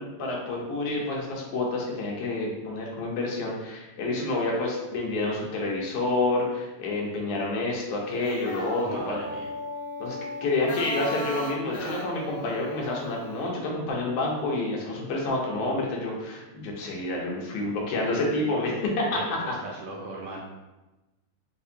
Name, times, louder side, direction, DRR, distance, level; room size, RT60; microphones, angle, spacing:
voice 1, 0.0-9.2 10.0-10.2 10.4-19.2 19.5-19.6, left 2 dB, 85° left, -2 dB, 2.3 m, -28 dB
sound 1, 8.0-13.5, left 1 dB, 60° left, 2.0 m, -36 dB
voice 2, 8.8-9.5 19.2-20.4, right 2 dB, 75° right, -2 dB, 1.7 m, -38 dB
6.3 x 2.5 x 2.7 m, 1.1 s
omnidirectional pair, 3.4 m